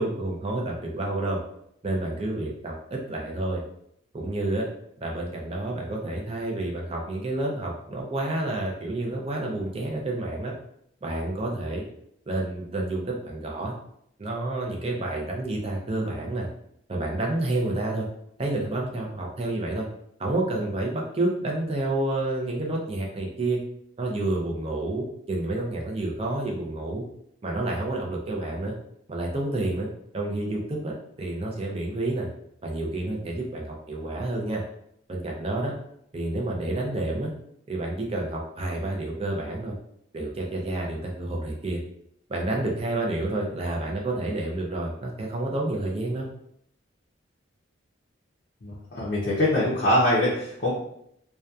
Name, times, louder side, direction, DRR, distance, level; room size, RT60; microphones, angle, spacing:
voice 1, 0.0-1.4 1.8-3.6 4.1-4.7 5.0-10.5 11.0-11.8 12.3-13.8 14.2-16.5 16.9-18.1 18.4-19.9 20.2-23.6 24.0-27.0 27.4-28.7 29.1-29.9 30.1-32.3 32.6-34.6 35.1-35.7 36.1-37.3 37.7-39.8 40.1-41.8 42.3-46.3, right 2 dB, 30° right, -1 dB, 0.4 m, -29 dB
voice 2, 48.6-50.7, left 1 dB, 45° left, -7 dB, 0.5 m, -23 dB
2.7 x 2.2 x 2.3 m, 0.73 s
head